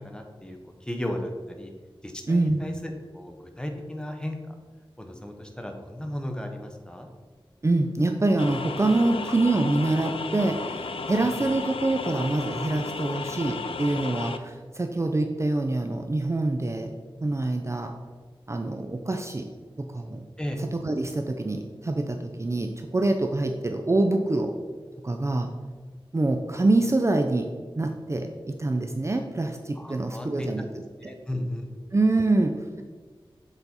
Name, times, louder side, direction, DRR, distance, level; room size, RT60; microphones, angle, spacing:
voice 1, 0.0-1.7 2.0-4.5 5.0-7.1 11.2-11.3 20.4-20.6 29.7-31.7, left 1 dB, 10° left, 3 dB, 0.8 m, -35 dB
voice 2, 2.3-2.6 7.6-16.9 17.2-17.9 18.5-19.5 19.8-20.2 20.6-24.5 25.0-25.5 26.1-27.5 27.8-30.7 31.0-31.1 31.9-32.5, right 2 dB, 30° right, 4 dB, 0.4 m, -25 dB
sound 1, 8.4-14.4, left 4 dB, 80° left, 0.4 m, -34 dB
6.8 x 4.0 x 4.1 m, 1.5 s
wide cardioid pair, 80°, 9 cm